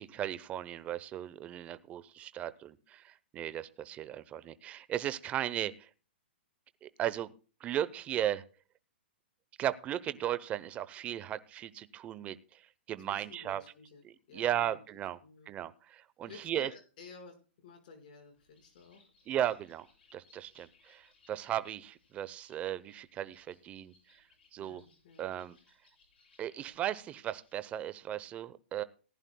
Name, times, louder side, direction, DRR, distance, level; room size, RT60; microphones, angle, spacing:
voice 1, 0.0-5.9 6.8-7.3 7.6-8.4 9.6-12.6 12.9-13.6 14.0-15.2 15.5-16.7 19.3-19.9 20.1-23.9 24.5-24.8 25.2-25.6 26.4-28.8, right 11 dB, 20° right, 15 dB, 0.7 m, -36 dB
voice 2, 13.1-14.8 15.2-15.5 16.2-19.1 24.6-25.3, left 4 dB, 50° left, 4 dB, 5.2 m, -53 dB
Bird, 18.3-28.0, left 4 dB, 70° left, 7.4 m, -68 dB
18.5 x 11.0 x 2.3 m, 0.36 s
hypercardioid pair, 145°, 6 cm